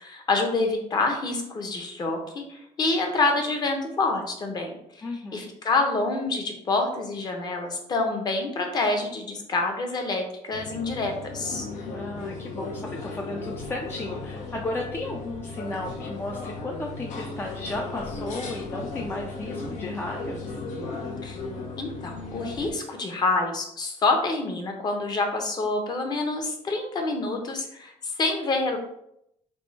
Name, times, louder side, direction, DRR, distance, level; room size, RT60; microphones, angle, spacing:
voice 1, 0.0-5.0 5.3-11.7 21.2-21.4 21.8-27.9 28.2-28.8, left 3 dB, 35° left, 3 dB, 0.8 m, -27 dB
voice 2, 5.0-5.5 11.9-20.5, left 2 dB, 20° left, 0 dB, 0.4 m, -34 dB
sound 1, 10.5-22.7, left 3 dB, 80° left, 0.8 m, -36 dB
3.5 x 3.2 x 4.1 m, 0.78 s
cardioid pair, 155°, 13 cm